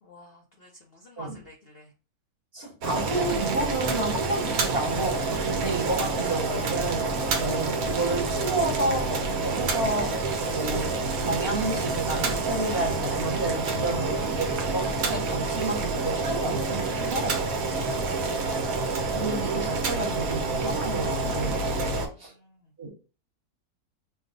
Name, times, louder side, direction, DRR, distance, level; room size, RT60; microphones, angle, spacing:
voice 1, 0.0-1.9 7.1-7.3 21.7-22.7, left 1 dB, 60° left, 0.6 m, -51 dB
voice 2, 2.5-10.2 10.5-17.4 19.1-21.6 22.2-22.3 22.8-22.9, right 2 dB, 45° right, 1.1 m, -31 dB
Boiling, 2.8-22.1, right 3 dB, 70° right, 1.1 m, -28 dB
2.6 x 2.3 x 3.7 m
omnidirectional pair, 1.6 m